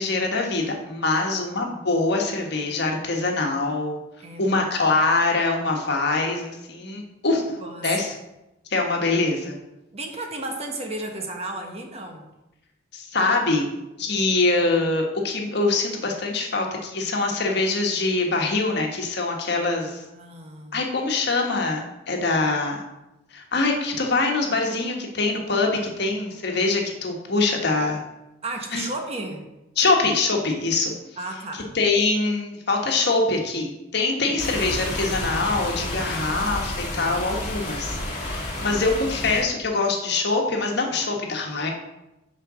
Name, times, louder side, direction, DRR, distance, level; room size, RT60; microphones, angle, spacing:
voice 1, 0.0-4.0 4.4-7.6 7.8-8.1 8.7-9.6 12.9-13.7 14.0-20.0 20.7-22.8 23.3-28.0 28.7-28.9 29.8-30.9 31.7-41.7, left 3 dB, 60° left, 1 dB, 1.4 m, -24 dB
voice 2, 4.2-4.6 7.6-8.1 9.9-12.3 20.0-20.8 28.4-29.6 31.2-31.7 34.2-34.6 36.0-36.5 38.5-39.2 40.9-41.1, right 2 dB, 35° right, 3 dB, 1.1 m, -34 dB
sound 1, 34.4-39.4, left 1 dB, 35° left, 2.5 m, -30 dB
6.7 x 5.3 x 6.1 m, 0.95 s
head